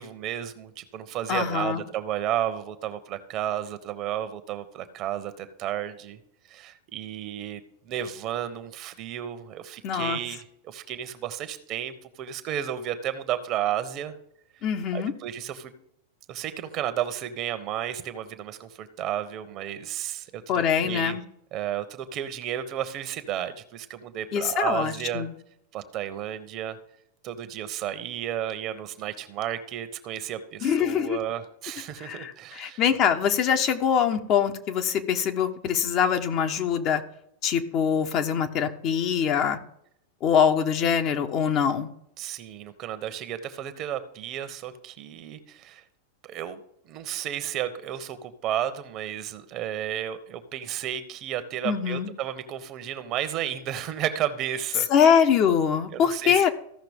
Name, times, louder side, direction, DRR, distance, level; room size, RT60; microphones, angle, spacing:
voice 1, 0.0-6.2 6.5-14.1 14.9-15.7 16.3-21.2 21.5-25.3 25.7-26.8 27.2-32.8 42.2-45.8 46.2-46.6 46.9-54.9 55.9-56.4, right 11 dB, 45° right, 10 dB, 1.1 m, -32 dB
voice 2, 1.3-1.8 9.8-10.2 14.6-15.1 20.5-21.2 24.3-25.3 30.6-31.2 32.0-37.0 37.4-39.6 40.2-41.9 51.6-52.1 54.9-56.5, left 7 dB, 45° left, 7 dB, 1.1 m, -23 dB
15.0 x 5.7 x 3.6 m, 0.72 s
hypercardioid pair, 105°, 0 cm